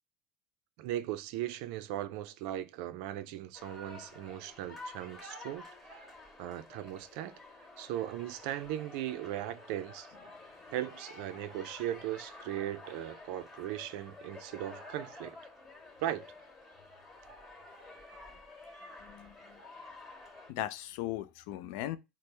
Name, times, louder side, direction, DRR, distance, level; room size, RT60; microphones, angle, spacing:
voice 1, 0.8-6.1 6.4-7.4 7.8-10.1 10.7-15.4 16.0-16.3, right 13 dB, 75° right, 0.4 m, -38 dB
sound 1, 3.5-20.5, left 2 dB, 20° left, 1.6 m, -50 dB
voice 2, 20.5-22.0, left 14 dB, 75° left, 0.3 m, -37 dB
4.2 x 2.0 x 3.2 m
supercardioid pair, 100°, 0 cm